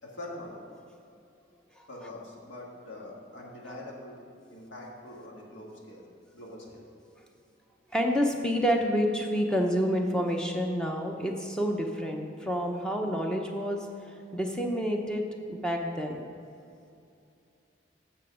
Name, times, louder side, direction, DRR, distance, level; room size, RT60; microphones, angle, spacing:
voice 1, 0.0-0.7 1.9-4.3 4.5-6.9, left 1 dB, 80° left, -2 dB, 1.7 m, -44 dB
voice 2, 7.9-13.9 14.3-16.2, equal, 5° left, 1 dB, 0.7 m, -28 dB
8.2 x 6.7 x 5.0 m, 2.5 s
head